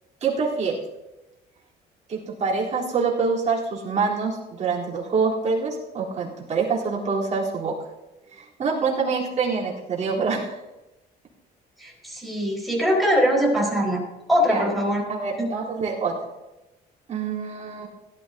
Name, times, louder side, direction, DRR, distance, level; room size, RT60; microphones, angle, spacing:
voice 1, 0.2-0.8 2.1-7.7 8.3-10.5 14.5-14.6 15.1-16.1 17.1-17.9, right 5 dB, 40° right, -5 dB, 3.8 m, -25 dB
voice 2, 11.8-15.0 15.4-15.5, equal, ahead, -3 dB, 4.7 m, -22 dB
17.0 x 12.5 x 2.8 m, 1.0 s
cardioid pair, 110°, 17 cm